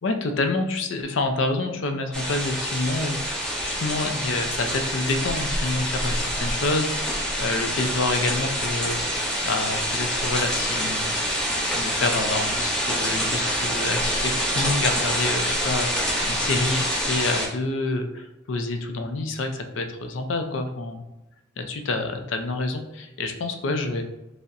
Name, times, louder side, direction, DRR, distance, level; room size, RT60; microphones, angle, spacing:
voice 1, 0.0-9.1 9.4-11.2 11.7-21.0 21.6-24.0, left 3 dB, 70° left, 6 dB, 0.4 m, -28 dB
sound 1, 2.1-17.5, equal, 5° left, 1.1 m, -26 dB
5.3 x 2.1 x 2.5 m, 0.94 s
head